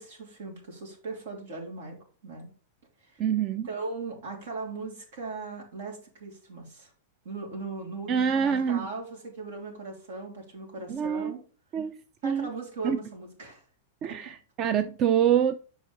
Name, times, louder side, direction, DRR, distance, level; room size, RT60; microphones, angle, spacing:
voice 1, 0.0-2.5 3.0-3.2 3.6-6.9 7.2-11.4 12.2-13.6 14.0-14.2, right 3 dB, 75° right, 3.3 m, -39 dB
voice 2, 3.2-3.7 8.1-8.9 10.9-11.3 11.7-12.0 12.2-12.5 12.8-13.0 14.0-15.5, right 8 dB, 35° right, 0.5 m, -25 dB
7.3 x 5.1 x 4.0 m
hypercardioid pair, 135°, 0 cm